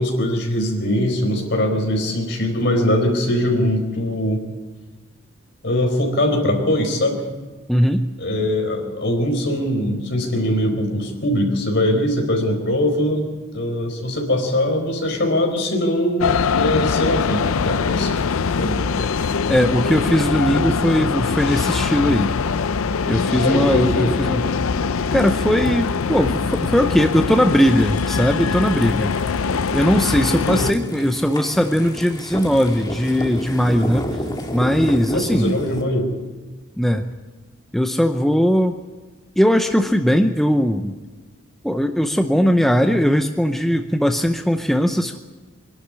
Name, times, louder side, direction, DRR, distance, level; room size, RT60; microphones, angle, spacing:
voice 1, 0.0-4.4 5.6-7.2 8.2-13.3 13.5-16.3 16.5-18.2 18.6-18.8 20.5-20.7 23.4-24.1 30.5-30.9 35.1-36.2, left 1 dB, 55° left, 3 dB, 4.4 m, -21 dB
voice 2, 7.7-8.0 19.0-19.1 19.5-22.3 23.1-24.5 25.1-29.1 29.7-34.1 34.5-35.6 36.8-37.0 37.7-38.8 39.4-40.9 41.6-45.2, equal, ahead, 5 dB, 0.6 m, -19 dB
sound 1, 16.2-30.7, left 5 dB, 85° left, 0.6 m, -22 dB
sound 2, 25.0-35.8, equal, 20° left, 1.9 m, -32 dB
23.5 x 11.5 x 9.9 m, 1.3 s
head